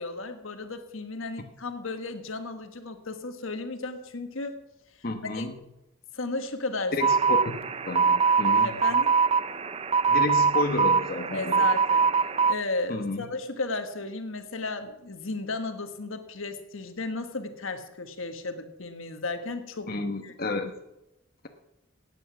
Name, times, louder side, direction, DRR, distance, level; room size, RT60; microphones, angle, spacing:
voice 1, 0.0-4.6 5.2-5.5 6.1-7.0 8.6-9.1 11.3-12.0 12.5-19.9 20.2-20.3, left 3 dB, 80° left, 7 dB, 1.4 m, -34 dB
voice 2, 5.0-5.5 6.9-7.5 7.9-8.8 10.1-11.7 12.9-13.3 19.9-20.7, left 3 dB, 45° left, 4 dB, 1.1 m, -31 dB
sound 1, 7.0-12.5, right 5 dB, 30° right, 0.5 m, -23 dB
17.0 x 8.9 x 6.0 m, 0.90 s
head